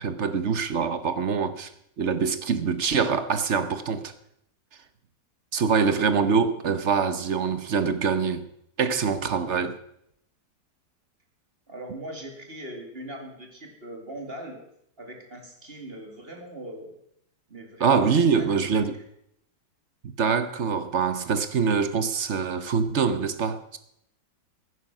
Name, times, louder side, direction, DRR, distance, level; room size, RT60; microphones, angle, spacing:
voice 1, 0.0-1.7 2.0-4.1 5.5-8.5 8.8-9.8 17.8-19.0 20.0-23.8, right 5 dB, 50° right, 1.0 m, -24 dB
voice 2, 11.7-14.6 15.0-17.0 17.5-19.0, right 1 dB, 35° right, 2.7 m, -40 dB
15.5 x 9.8 x 6.0 m
omnidirectional pair, 1.9 m